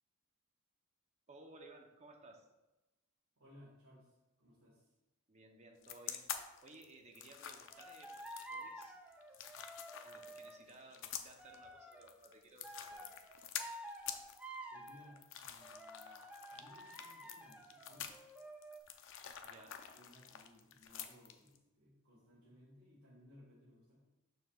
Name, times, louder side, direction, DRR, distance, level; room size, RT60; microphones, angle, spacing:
voice 1, 1.3-2.5 5.3-6.3 6.6-8.2 8.5-9.0 10.0-13.1 19.4-19.8, right 2 dB, 30° right, 2 dB, 0.8 m, -58 dB
voice 2, 3.4-4.9 14.7-16.2 16.5-18.2 19.6-24.0, left 1 dB, 85° right, -7 dB, 1.8 m, -62 dB
sound 1, 5.8-21.6, left 9 dB, 60° left, 0.5 m, -48 dB
sound 2, 7.7-10.7 11.4-12.2 12.6-15.1 15.6-18.8, right 1 dB, 5° right, 0.4 m, -51 dB
6.9 x 6.4 x 2.4 m, 1.0 s
head